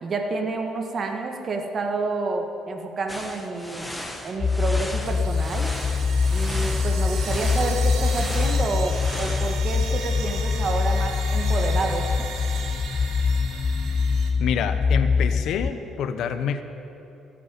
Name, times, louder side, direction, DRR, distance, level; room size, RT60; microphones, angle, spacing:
voice 1, 0.0-3.9 4.2-5.7 6.3-12.1, right 3 dB, 40° right, 4 dB, 1.5 m, -29 dB
sound 1, 3.1-9.6, left 1 dB, 5° left, 1.5 m, -37 dB
sound 2, 4.4-15.7, left 5 dB, 35° left, 0.4 m, -24 dB
sound 3, 5.0-14.3, right 6 dB, 70° right, 1.8 m, -37 dB
voice 2, 14.4-16.6, left 7 dB, 70° left, 10 dB, 1.0 m, -27 dB
14.0 x 8.5 x 10.0 m, 2.9 s
cardioid pair, 105°, 0 cm